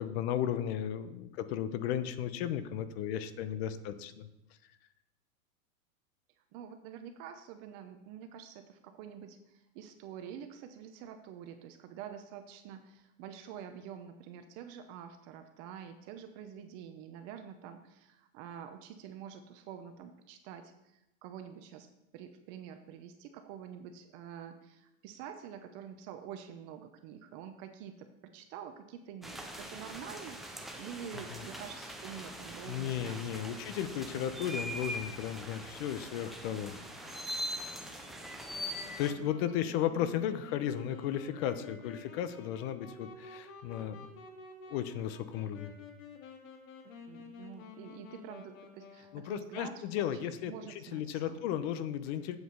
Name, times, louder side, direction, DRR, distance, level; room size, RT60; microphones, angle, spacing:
voice 1, 0.0-4.3 31.3-31.4 32.7-36.8 37.1-37.2 39.0-44.1 44.7-45.7 49.1-52.4, left 10 dB, 45° left, 12 dB, 1.0 m, -35 dB
voice 2, 6.5-21.9 22.1-33.6 34.1-34.3 46.8-50.1 50.4-51.4, right 8 dB, 40° right, 7 dB, 0.9 m, -47 dB
sound 1, 29.2-39.1, equal, ahead, 0.4 m, -42 dB
Wind instrument woodwind instrument, 38.5-49.4, left 5 dB, 65° left, 2.2 m, -51 dB
8.1 x 7.9 x 6.7 m, 0.91 s
hypercardioid pair, 135°, 43 cm